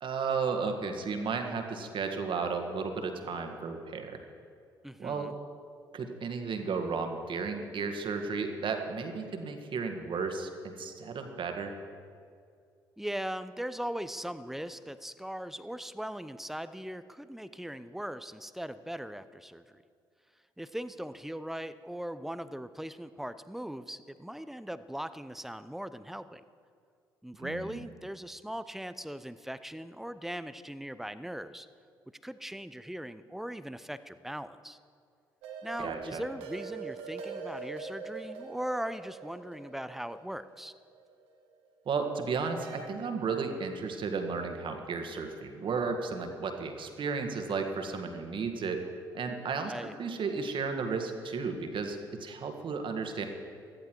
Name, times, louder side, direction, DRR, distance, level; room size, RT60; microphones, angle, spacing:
voice 1, 0.0-4.2 5.0-5.3 5.9-11.7 27.4-27.8 35.8-36.2 41.9-48.9 49.1-53.3, right 5 dB, 50° right, 5 dB, 1.9 m, -34 dB
voice 2, 4.8-5.3 13.0-19.8 20.6-26.4 27.2-31.7 32.2-34.8 35.6-40.7 49.7-49.9, equal, 5° right, 13 dB, 0.8 m, -39 dB
sound 1, 35.4-41.5 42.6-42.9, right 5 dB, 70° right, 1.7 m, -43 dB
17.5 x 14.0 x 4.7 m, 2.3 s
hypercardioid pair, 45°, 11 cm